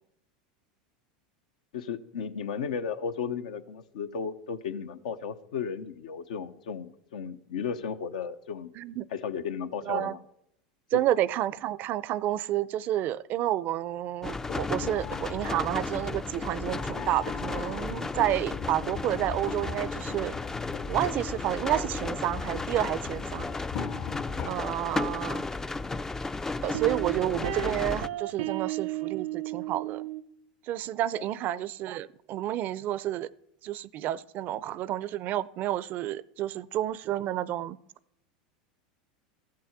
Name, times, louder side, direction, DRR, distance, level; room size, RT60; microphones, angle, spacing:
voice 1, 1.7-8.7 9.1-10.2 10.9-11.0, left 6 dB, 80° left, 8 dB, 0.9 m, -34 dB
voice 2, 8.8-9.1 9.9-10.2 10.9-20.3 20.9-23.5 24.4-25.4 26.6-30.1 30.7-33.3 33.6-37.8, right 13 dB, 45° right, 21 dB, 0.5 m, -30 dB
sound 1, 14.2-28.1, left 3 dB, 10° left, 0.4 m, -34 dB
sound 2, 14.4-24.5, left 7 dB, 45° left, 0.8 m, -39 dB
sound 3, 25.7-25.8 26.7-30.2, right 13 dB, 75° right, 0.8 m, -34 dB
14.0 x 7.6 x 7.3 m, 0.76 s
hypercardioid pair, 100°, 4 cm